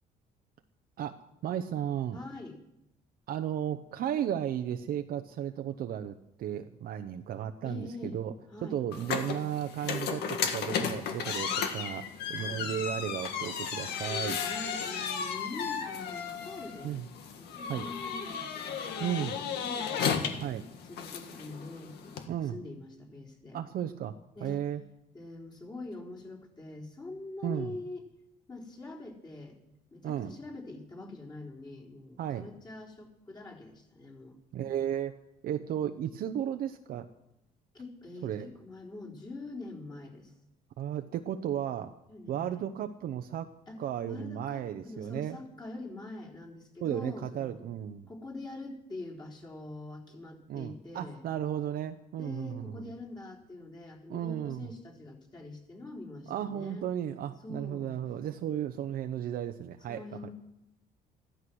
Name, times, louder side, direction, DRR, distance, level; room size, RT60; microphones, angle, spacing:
voice 1, 1.0-2.2 3.3-8.3 8.6-14.4 16.8-17.0 17.7-17.9 19.0-19.4 20.4-20.7 22.3-22.6 23.5-24.1 24.4-24.8 27.4-27.7 30.0-30.3 32.2-32.5 34.5-35.1 35.4-37.1 38.2-38.5 40.8-41.9 42.3-43.5 43.8-45.4 46.8-48.1 50.5-52.9 54.1-54.7 56.3-60.3, right 10 dB, 60° right, 7 dB, 0.8 m, -34 dB
voice 2, 2.1-2.6 7.6-8.2 8.5-8.8 12.3-12.7 14.4-17.0 17.3-20.4 20.8-23.6 24.4-24.6 25.1-28.1 28.5-29.6 29.9-34.4 37.7-40.3 42.1-42.6 43.7-47.6 48.1-51.2 52.2-56.9 57.4-58.0 59.9-60.3, left 2 dB, 25° left, -3 dB, 3.9 m, -44 dB
sound 1, 8.9-22.3, left 7 dB, 75° left, 2.0 m, -34 dB
15.0 x 13.0 x 6.3 m, 0.85 s
cardioid pair, 110°, 17 cm